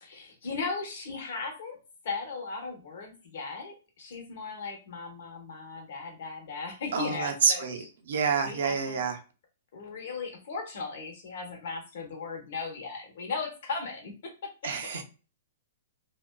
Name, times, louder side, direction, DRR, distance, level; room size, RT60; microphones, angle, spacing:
voice 1, 0.0-1.8 2.0-7.9 8.4-9.1 9.7-15.0, left 4 dB, 65° left, 0.9 m, -37 dB
voice 2, 6.9-9.2 14.6-15.0, right 6 dB, 75° right, 0.6 m, -28 dB
2.5 x 2.2 x 2.2 m
hypercardioid pair, 145°, 0 cm